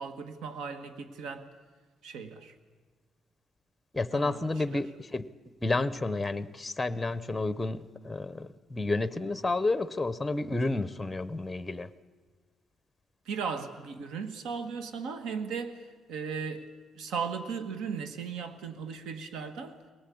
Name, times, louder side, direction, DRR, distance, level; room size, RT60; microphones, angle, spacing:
voice 1, 0.0-1.5 2.0-2.5 4.1-4.8 13.2-16.7 16.9-19.8, right 6 dB, 90° right, 9 dB, 1.5 m, -37 dB
voice 2, 3.9-5.3 5.6-11.9, left 2 dB, 10° left, 14 dB, 0.6 m, -30 dB
22.0 x 18.5 x 8.5 m, 1.4 s
cardioid pair, 155°, 0 cm